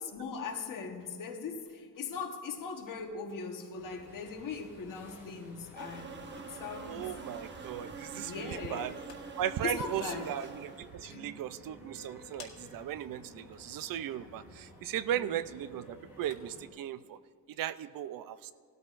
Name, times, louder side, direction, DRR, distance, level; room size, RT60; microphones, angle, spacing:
voice 1, 0.0-7.1 8.0-9.2 9.6-10.4 11.0-11.4 15.1-15.4, left 5 dB, 60° left, 3 dB, 1.3 m, -40 dB
sound 1, 3.7-16.7, left 1 dB, 5° right, 3.7 m, -54 dB
sound 2, 5.8-10.9, right 5 dB, 30° right, 0.9 m, -46 dB
voice 2, 6.9-8.9 9.4-17.2 17.6-18.5, right 11 dB, 65° right, 15 dB, 0.5 m, -37 dB
sound 3, 8.8-16.7, left 7 dB, 85° left, 1.8 m, -60 dB
18.5 x 13.0 x 2.5 m, 2.3 s
wide cardioid pair, 170°, 36 cm